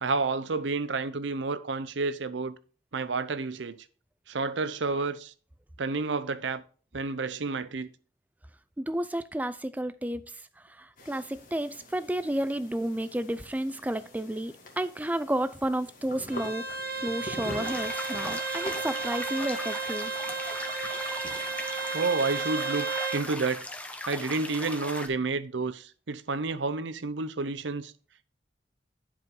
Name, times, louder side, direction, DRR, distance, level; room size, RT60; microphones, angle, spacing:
voice 1, 0.0-2.5 2.9-3.8 4.3-5.3 5.8-6.6 6.9-7.9 21.9-23.7 24.1-27.9, right 3 dB, 80° right, 0.7 m, -30 dB
voice 2, 8.8-20.1, right 1 dB, 10° right, 0.4 m, -32 dB
sound 1, 11.0-22.5, equal, 45° left, 1.8 m, -46 dB
Bowed string instrument, 16.3-23.2, right 4 dB, 55° right, 1.7 m, -33 dB
sound 2, 17.0-25.1, left 1 dB, 10° left, 0.8 m, -39 dB
11.0 x 5.0 x 3.8 m
head